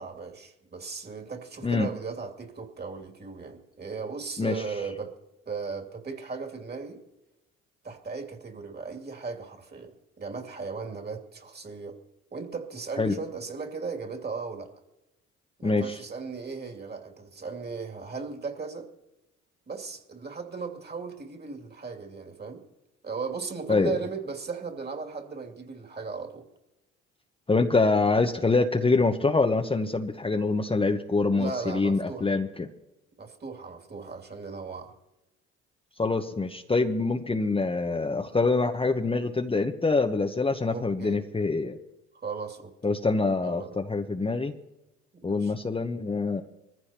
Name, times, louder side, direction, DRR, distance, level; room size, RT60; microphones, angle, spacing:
voice 1, 0.0-5.1 5.5-7.0 7.8-12.0 12.3-14.7 15.6-18.9 19.7-22.6 23.0-26.5 31.3-32.3 33.2-34.9 40.7-41.2 42.1-43.0 43.4-43.8 45.1-45.5, right 4 dB, 30° right, 2 dB, 2.7 m, -37 dB
voice 2, 15.6-15.9 23.7-23.9 27.5-32.7 36.0-41.8 42.8-44.5 45.2-46.4, left 3 dB, 15° left, 4 dB, 1.0 m, -25 dB
23.0 x 15.0 x 2.9 m, 0.96 s
hypercardioid pair, 60°, 34 cm